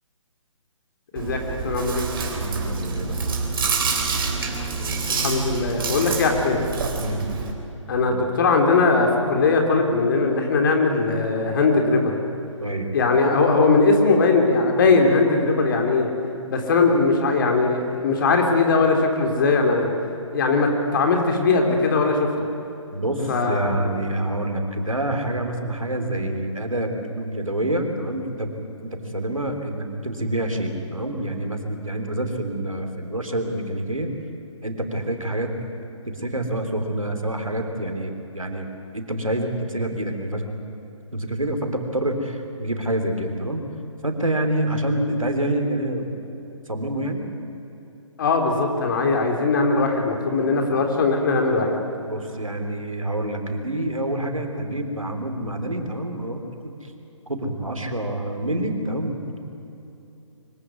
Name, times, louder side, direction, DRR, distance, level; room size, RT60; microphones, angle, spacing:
voice 1, 1.1-2.1 4.5-4.7 5.1-6.6 7.9-12.2 12.9-16.1 16.5-19.9 20.3-22.3 23.3-24.0 48.2-51.8, left 3 dB, 40° left, 3 dB, 3.7 m, -20 dB
Chewing mastication, 1.1-7.5, right 4 dB, 45° right, 3.8 m, -27 dB
voice 2, 2.4-3.4 7.0-7.3 8.0-8.3 12.6-12.9 22.9-28.5 28.8-34.1 34.6-35.5 36.1-38.7 38.9-40.5 41.1-43.7 44.0-46.1 46.7-47.3 50.4-50.6 52.0-56.9 57.3-59.4, right 1 dB, 90° right, 5 dB, 3.5 m, -27 dB
24.0 x 17.0 x 9.6 m, 3.0 s
figure-of-eight pair, 140°, 17 cm